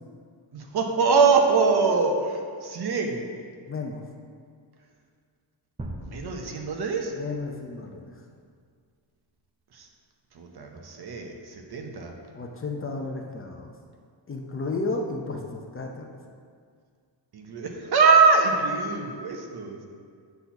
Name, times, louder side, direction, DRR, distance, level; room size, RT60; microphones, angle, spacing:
voice 1, 0.5-3.4 6.0-7.1 9.7-9.9 10.3-12.2 17.3-19.9, right 4 dB, 55° right, 2 dB, 1.0 m, -23 dB
voice 2, 3.7-4.0 7.1-8.2 12.3-13.7 14.3-16.2, left 3 dB, 30° left, 2 dB, 0.7 m, -33 dB
sound 1, 5.8-7.7, right 1 dB, 15° right, 0.6 m, -41 dB
8.1 x 4.2 x 5.8 m, 2.1 s
wide cardioid pair, 130°, 46 cm